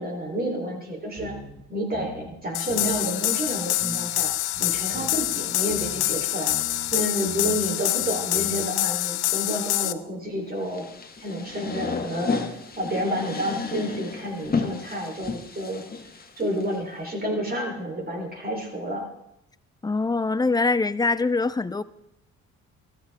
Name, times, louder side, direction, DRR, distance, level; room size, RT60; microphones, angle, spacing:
voice 1, 0.0-1.4 1.7-4.3 4.6-6.6 6.9-10.9 11.2-15.8 16.4-19.1, equal, 30° right, 2 dB, 3.7 m, -30 dB
sound 1, 1.2-1.6 1.9-2.4 2.7-3.0 3.5-3.6 3.8-6.2 6.5-7.0 7.3-7.7 8.0-8.5, right 1 dB, 50° right, 5.1 m, -41 dB
sound 2, 2.5-9.9, left 15 dB, 80° left, 0.6 m, -26 dB
sound 3, 10.6-16.8, left 4 dB, 30° left, 1.5 m, -32 dB
voice 2, 19.8-21.8, left 3 dB, 15° left, 15 dB, 0.5 m, -23 dB
14.0 x 13.5 x 3.6 m, 0.81 s
cardioid pair, 90°, 30 cm